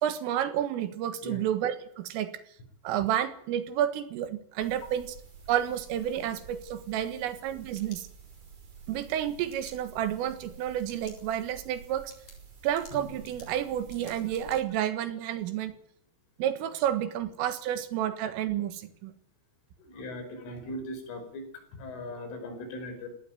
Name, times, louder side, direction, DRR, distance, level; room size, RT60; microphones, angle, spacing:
voice 1, 0.0-2.3 2.8-5.2 5.5-8.1 8.9-12.1 12.6-15.7 16.4-19.1, right 11 dB, 75° right, 11 dB, 4.1 m, -30 dB
sound 1, 4.6-14.6, right 6 dB, 45° right, 7.7 m, -50 dB
sound 2, 7.6-8.6 9.5-9.8 10.8-11.2 11.6-11.7 12.1-14.6, left 3 dB, 35° left, 8.4 m, -54 dB
Drum, 12.9-15.1, left 3 dB, 50° left, 9.2 m, -52 dB
voice 2, 19.8-21.4 21.7-23.1, left 1 dB, 70° left, 6 dB, 7.8 m, -39 dB
19.0 x 18.0 x 9.2 m, 0.68 s
omnidirectional pair, 5.9 m